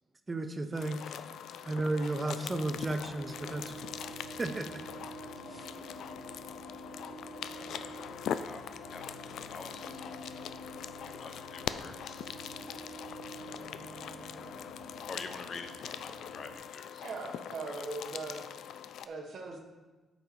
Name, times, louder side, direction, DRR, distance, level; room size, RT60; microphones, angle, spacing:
voice 1, 0.3-1.2 1.6-3.7 4.4-4.7 5.5-5.7, right 2 dB, 25° right, 8 dB, 0.6 m, -33 dB
sound 1, 0.7-19.1, left 9 dB, 75° left, 0.3 m, -42 dB
sound 2, 2.4-16.6, right 2 dB, 90° left, 2.0 m, -48 dB
voice 2, 7.5-9.0 9.5-10.4 11.0-12.4 13.7-14.6 15.1-17.1 17.7-17.8, left 4 dB, 55° left, 7 dB, 0.8 m, -48 dB
voice 3, 17.0-18.5 19.0-19.6, right 3 dB, 60° right, 2 dB, 1.3 m, -40 dB
8.3 x 5.3 x 4.8 m, 1.2 s
cardioid pair, 90°, 0 cm